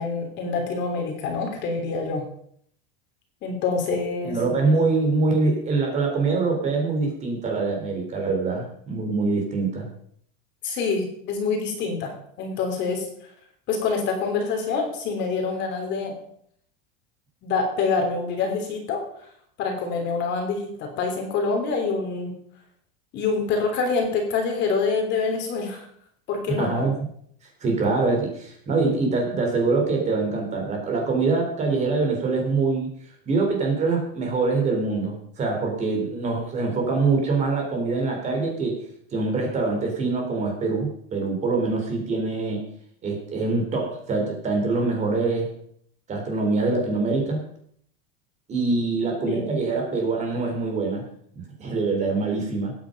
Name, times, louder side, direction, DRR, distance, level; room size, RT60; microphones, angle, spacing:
voice 1, 0.0-2.2 3.4-4.4 10.6-12.1 12.4-13.0 13.7-16.1 17.4-19.0 19.6-22.3 23.1-25.9 26.3-26.9 49.3-49.4, left 4 dB, 35° left, 3 dB, 3.2 m, -26 dB
voice 2, 4.2-9.9 26.6-26.9 27.6-32.9 33.3-38.8 39.1-42.6 43.0-45.5 46.1-47.4 48.5-51.0 51.3-52.7, right 3 dB, 25° right, 1 dB, 3.9 m, -24 dB
19.0 x 9.4 x 5.2 m, 0.66 s
supercardioid pair, 165°, 30 cm